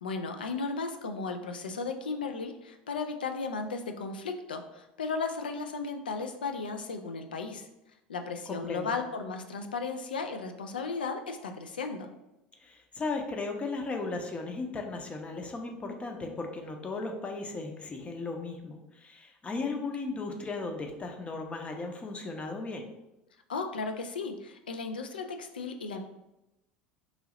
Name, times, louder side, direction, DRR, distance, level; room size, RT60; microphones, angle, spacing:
voice 1, 0.0-7.7 8.1-12.1 23.5-26.0, left 4 dB, 80° left, 5 dB, 0.4 m, -35 dB
voice 2, 8.5-9.0 12.6-22.9, left 3 dB, 25° left, 3 dB, 0.6 m, -36 dB
3.1 x 2.7 x 3.7 m, 0.94 s
figure-of-eight pair, 70°, 5 cm